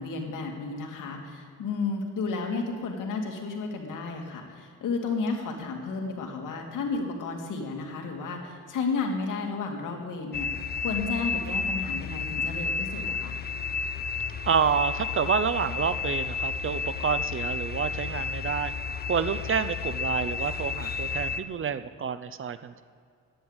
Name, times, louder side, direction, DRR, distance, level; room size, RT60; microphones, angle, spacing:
voice 1, 0.0-13.4, left 4 dB, 80° left, 1 dB, 2.4 m, -32 dB
sound 1, 10.3-21.4, left 5 dB, 30° left, 0.8 m, -31 dB
voice 2, 14.5-18.7 19.1-22.8, right 7 dB, 40° right, 13 dB, 0.7 m, -28 dB
10.5 x 10.5 x 8.1 m, 2.3 s
cardioid pair, 100°, 31 cm